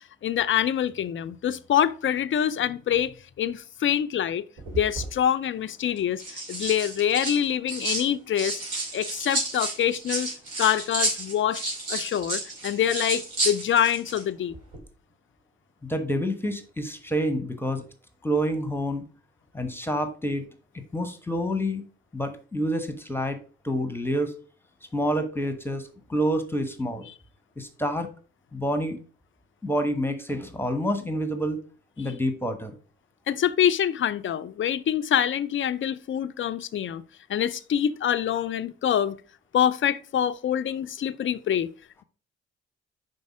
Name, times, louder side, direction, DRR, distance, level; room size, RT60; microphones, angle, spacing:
voice 1, 0.2-4.4 4.7-6.2 6.5-8.6 8.9-10.3 10.6-11.6 11.9-14.5 33.3-37.0 37.3-39.2 39.5-41.7, left 9 dB, 35° left, 0.5 m, -25 dB
sound 1, 4.6-5.1 6.0-8.1 8.4-14.2 14.5-14.8, right 2 dB, 65° right, 2.7 m, -31 dB
voice 2, 15.8-17.8 18.2-19.0 19.5-20.4 20.7-21.8 22.1-23.4 23.6-24.3 24.9-27.0 27.6-28.1 28.5-29.0 29.6-31.6 32.0-32.7, equal, 5° left, 1.1 m, -28 dB
5.3 x 4.0 x 4.8 m
hypercardioid pair, 45°, 35 cm